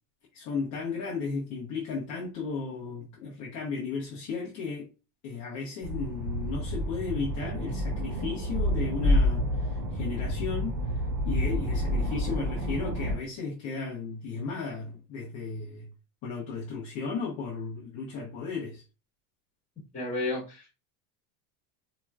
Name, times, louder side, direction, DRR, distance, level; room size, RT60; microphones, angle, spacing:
voice 1, 0.3-4.9 5.2-15.9 16.2-18.8, left 5 dB, 35° left, 0.9 m, -35 dB
sound 1, 5.8-13.1, equal, 45° right, 2.2 m, -29 dB
voice 2, 19.9-20.7, left 2 dB, 15° left, 1.7 m, -32 dB
4.4 x 3.0 x 2.3 m
cardioid pair, 170°, 49 cm